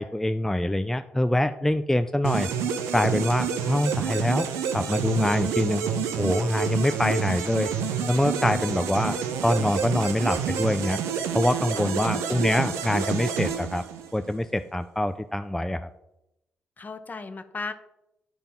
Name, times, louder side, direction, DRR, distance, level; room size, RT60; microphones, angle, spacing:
voice 1, 0.0-2.5 2.9-4.5 4.7-5.9 6.2-7.7 8.1-9.2 9.4-11.0 11.3-13.8 14.1-15.9, left 1 dB, 5° left, 9 dB, 0.4 m, -24 dB
sound 1, 2.2-14.3, right 7 dB, 80° right, 0.8 m, -29 dB
voice 2, 11.7-12.1 16.8-17.7, left 3 dB, 35° left, 9 dB, 0.9 m, -36 dB
10.5 x 3.5 x 5.7 m, 0.88 s
hypercardioid pair, 50°, 5 cm